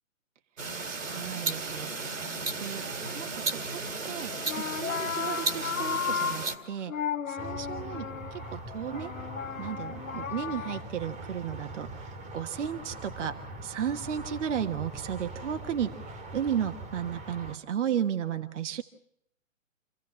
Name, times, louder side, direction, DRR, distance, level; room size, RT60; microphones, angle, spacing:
sound 1, 0.6-6.6, right 3 dB, 80° right, 3.1 m, -34 dB
voice 1, 0.8-2.8 3.2-6.9 7.3-9.1 9.6-13.4 13.6-18.8, right 9 dB, 65° right, 8 dB, 1.4 m, -34 dB
sound 2, 4.3-10.8, left 7 dB, 75° left, 1.1 m, -34 dB
sound 3, 7.4-17.6, right 2 dB, 20° right, 1.7 m, -42 dB
27.0 x 15.5 x 7.5 m, 0.74 s
hypercardioid pair, 130°, 39 cm